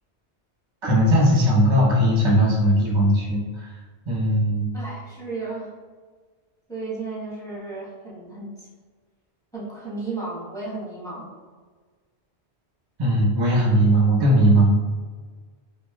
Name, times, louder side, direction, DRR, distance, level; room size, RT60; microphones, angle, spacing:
voice 1, 0.8-3.7 4.1-4.7 13.0-14.8, equal, 30° right, -4 dB, 0.8 m, -18 dB
voice 2, 4.7-5.7 6.7-8.7 9.5-11.3, right 3 dB, 5° left, -8 dB, 1.0 m, -34 dB
4.3 x 2.7 x 2.2 m, 1.5 s
omnidirectional pair, 1.1 m